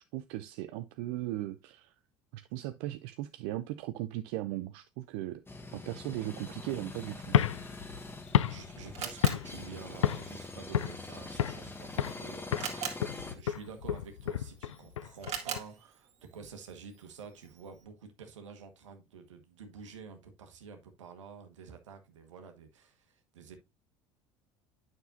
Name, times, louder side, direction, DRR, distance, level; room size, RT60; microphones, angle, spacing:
voice 1, 0.1-1.9 2.3-5.4 5.7-7.4, right 15 dB, 65° right, 0.6 m, -37 dB
sound 1, 5.5-13.3, left 3 dB, 15° left, 1.3 m, -44 dB
sound 2, 7.2-9.7 10.0-10.4 10.7-11.7 12.0-12.3 12.5-15.6, left 10 dB, 85° left, 0.4 m, -31 dB
Camera, 8.0-17.8, right 7 dB, 45° right, 2.1 m, -45 dB
voice 2, 8.4-12.8 13.1-23.6, right 6 dB, 80° right, 1.3 m, -49 dB
9.2 x 6.1 x 2.7 m
hypercardioid pair, 65°, 15 cm